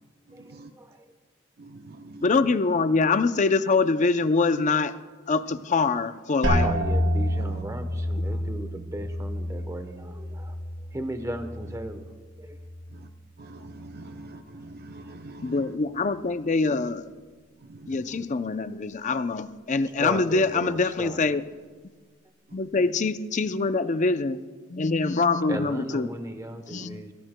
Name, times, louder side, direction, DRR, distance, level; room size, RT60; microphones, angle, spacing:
voice 1, 0.3-1.2 6.3-12.1 12.4-12.6 19.8-21.4 25.5-27.1, right 1 dB, 15° right, 7 dB, 0.9 m, -37 dB
voice 2, 1.6-2.3 12.9-13.1 13.4-15.7 17.7-18.2 26.8-26.9, right 2 dB, 50° right, 6 dB, 0.6 m, -44 dB
voice 3, 2.2-4.9 5.3-6.7 15.4-17.0 17.9-21.4 22.5-24.4 24.7-26.1 26.7-27.0, left 4 dB, 35° left, 12 dB, 0.5 m, -24 dB
sound 1, 6.4-12.1 12.4-13.1 13.6-14.0, equal, 70° right, 4.5 m, -29 dB
21.5 x 17.0 x 2.2 m, 1.4 s
head